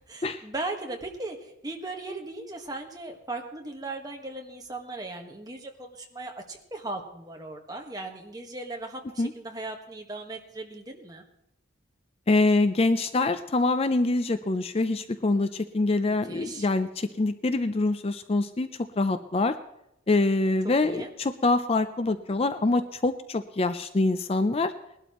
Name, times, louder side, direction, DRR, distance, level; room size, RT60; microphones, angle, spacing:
voice 1, 0.0-11.2 16.3-16.7 20.8-21.1, right 2 dB, 20° right, 2 dB, 1.5 m, -38 dB
voice 2, 12.3-18.7 19.0-19.6 20.1-24.7, left 2 dB, 30° left, 11 dB, 0.4 m, -25 dB
20.0 x 12.0 x 3.1 m, 0.82 s
head